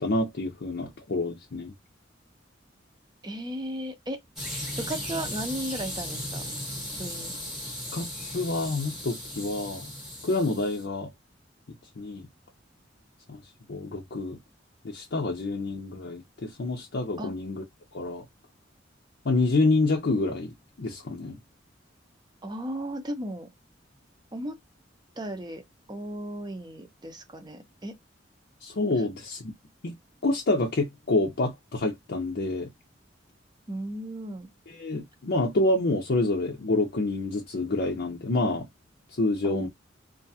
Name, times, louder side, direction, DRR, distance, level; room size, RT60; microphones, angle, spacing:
voice 1, 0.0-1.7 7.9-9.9 10.2-11.1 12.0-12.3 13.3-13.4 13.7-14.4 14.8-17.6 17.9-18.2 19.2-20.5 20.8-21.4 28.6-29.5 29.8-29.9 30.2-32.7 34.7-38.7 39.2-39.7, left 2 dB, 60° left, 0.6 m, -27 dB
voice 2, 3.2-4.2 4.8-6.4 7.0-7.3 17.2-17.3 22.4-23.5 24.3-24.6 25.2-25.6 25.9-27.9 33.7-34.5 39.4-39.7, right 1 dB, 25° right, 0.6 m, -35 dB
sound 1, 4.4-10.8, left 1 dB, ahead, 0.9 m, -36 dB
2.4 x 2.2 x 2.7 m
head